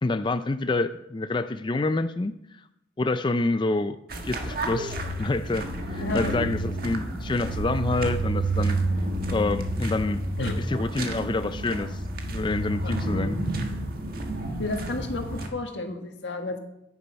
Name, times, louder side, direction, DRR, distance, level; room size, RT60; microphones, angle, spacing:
voice 1, 0.0-2.6 3.0-4.0 4.2-8.8 9.3-10.2 10.6-13.4, left 2 dB, 25° left, 10 dB, 0.4 m, -27 dB
sound 1, 4.1-15.5, right 2 dB, 55° right, 1.5 m, -30 dB
voice 2, 6.0-6.3 10.4-10.6 12.8-12.9 14.6-16.6, left 2 dB, 90° left, 4 dB, 1.7 m, -31 dB
9.8 x 9.4 x 5.7 m, 0.82 s
head